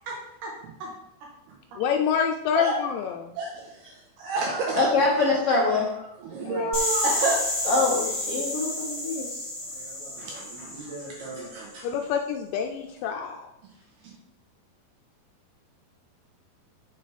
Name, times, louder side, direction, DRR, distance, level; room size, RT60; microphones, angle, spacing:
voice 1, 1.8-3.2 6.5-6.7 11.8-13.4, left 7 dB, 85° left, 3 dB, 2.8 m, -27 dB
voice 2, 3.8-4.9 5.3-5.4 6.2-7.4 7.6-7.7 9.7-11.9, right 3 dB, 70° right, -1 dB, 2.8 m, -30 dB
voice 3, 4.7-5.9 7.7-9.4, left 3 dB, 65° left, -5 dB, 1.4 m, -24 dB
sound 1, 6.7-11.5, left 1 dB, 30° left, 3.0 m, -30 dB
9.1 x 6.8 x 3.4 m, 0.86 s
omnidirectional pair, 5.2 m